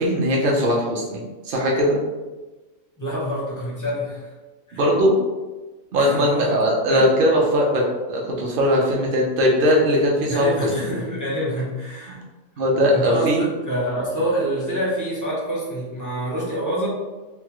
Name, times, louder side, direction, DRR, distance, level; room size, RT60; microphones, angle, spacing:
voice 1, 0.0-2.0 4.7-5.1 5.9-7.8 8.1-10.7 12.6-13.4, equal, 55° right, -2 dB, 0.5 m, -19 dB
voice 2, 3.0-4.3 4.7-4.8 6.0-6.6 6.9-7.0 10.3-12.2 12.9-16.9, right 1 dB, 30° left, -6 dB, 0.3 m, -26 dB
3.7 x 2.1 x 3.0 m, 1.2 s
omnidirectional pair, 1.7 m